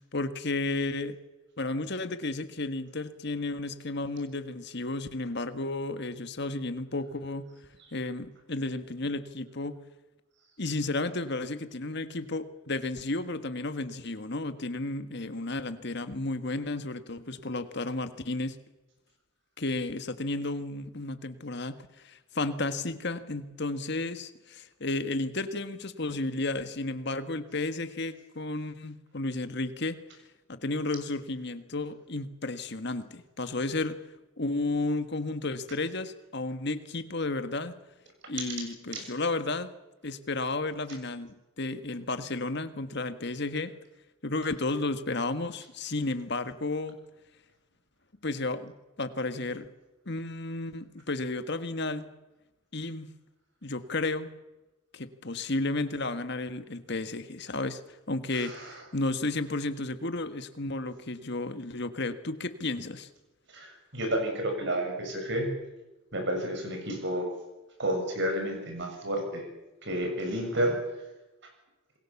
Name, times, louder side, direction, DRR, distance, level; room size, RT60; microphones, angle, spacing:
voice 1, 0.1-1.2 1.6-7.5 7.9-9.8 10.6-18.6 19.6-21.8 22.0-30.0 30.5-34.0 34.4-37.8 38.3-39.7 40.0-43.7 44.2-47.0 48.2-49.7 50.0-52.1 52.7-53.1 53.6-54.3 54.9-57.8 58.1-63.1, left 2 dB, 55° left, 10 dB, 1.6 m, -33 dB
voice 2, 63.5-65.5 66.1-67.3 67.8-69.5 69.8-70.8, right 1 dB, 55° right, 4 dB, 7.0 m, -30 dB
28.0 x 21.5 x 7.2 m, 1.0 s
head